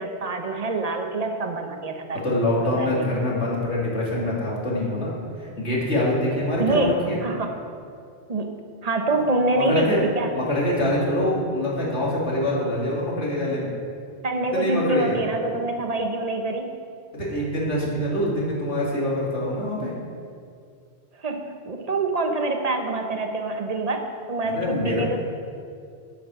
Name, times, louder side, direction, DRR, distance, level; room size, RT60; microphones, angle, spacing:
voice 1, 0.0-3.1 6.6-6.9 7.2-7.5 8.3-10.3 14.2-16.7 21.2-25.2, right 2 dB, 35° right, 5 dB, 1.0 m, -26 dB
voice 2, 2.2-7.2 9.1-9.2 9.5-10.0 10.3-13.7 14.5-15.2 17.1-19.9 24.4-25.0, left 1 dB, 85° left, -4 dB, 2.7 m, -25 dB
9.1 x 8.5 x 6.2 m, 2.4 s
omnidirectional pair, 1.1 m